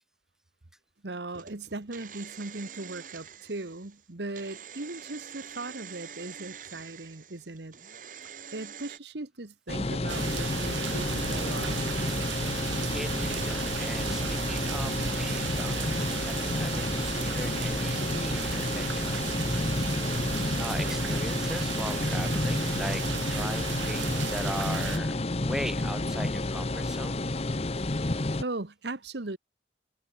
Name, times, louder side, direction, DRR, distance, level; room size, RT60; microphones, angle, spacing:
voice 1, 1.0-7.8 8.5-11.8 28.4-29.4, right 2 dB, 70° right, 1.3 m, -38 dB
sound 1, 1.3-9.0, right 8 dB, 45° right, 1.9 m, -46 dB
sound 2, 9.7-28.4, left 2 dB, 35° left, 0.8 m, -30 dB
sound 3, 10.1-25.0, right 9 dB, 85° right, 0.5 m, -35 dB
voice 2, 12.9-19.8 20.6-23.0 23.3-27.2, equal, 5° right, 3.3 m, -39 dB
head